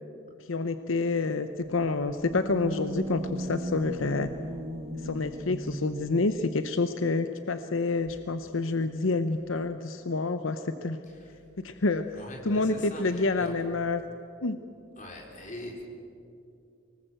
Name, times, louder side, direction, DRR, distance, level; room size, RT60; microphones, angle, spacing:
voice 1, 0.5-4.3 5.0-11.0 11.6-12.1 12.5-14.0 14.4-14.6, left 3 dB, 80° left, 9 dB, 0.8 m, -28 dB
sound 1, 1.6-6.4, right 1 dB, 30° right, 1.1 m, -37 dB
voice 2, 11.0-11.4 12.1-13.5 15.0-15.8, left 1 dB, 40° left, 0 dB, 4.2 m, -42 dB
24.0 x 19.0 x 7.8 m, 2.5 s
head